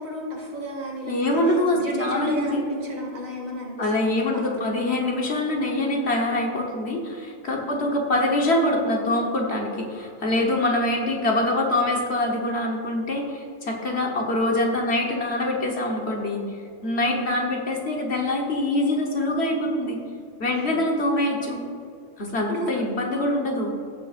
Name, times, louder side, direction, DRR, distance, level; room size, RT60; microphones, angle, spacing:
voice 1, 0.0-5.0 7.6-8.0 17.0-17.4 20.5-20.8 22.5-22.8, right 1 dB, 70° right, -2 dB, 2.5 m, -33 dB
voice 2, 1.1-2.6 3.8-16.4 16.8-20.0 20.4-21.6 22.2-23.7, left 1 dB, 50° left, 0 dB, 1.4 m, -24 dB
15.5 x 7.1 x 2.5 m, 2.3 s
omnidirectional pair, 1.4 m